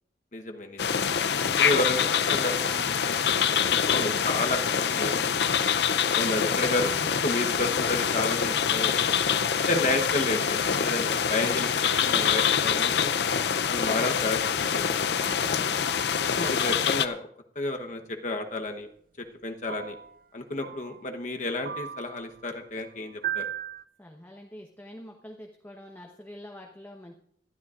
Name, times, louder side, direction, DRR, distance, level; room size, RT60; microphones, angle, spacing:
voice 1, 0.3-1.0 1.6-2.0 2.3-2.5 3.9-4.6 4.9-5.1 6.1-9.2 9.7-13.1 13.7-15.0 16.3-17.3 17.5-18.9 19.4-20.0 20.3-23.5, left 2 dB, 45° left, 4 dB, 1.0 m, -31 dB
sound 1, 0.8-17.1, left 7 dB, 70° left, 0.6 m, -25 dB
voice 2, 1.4-5.7 8.3-8.8 15.4-15.9 24.0-27.1, equal, 10° left, 1 dB, 1.1 m, -45 dB
sound 2, 18.4-18.5 19.7-20.2 20.6-21.0 21.6-22.3 23.2-23.8, right 10 dB, 50° right, 0.5 m, -35 dB
20.0 x 12.5 x 2.5 m, 0.64 s
head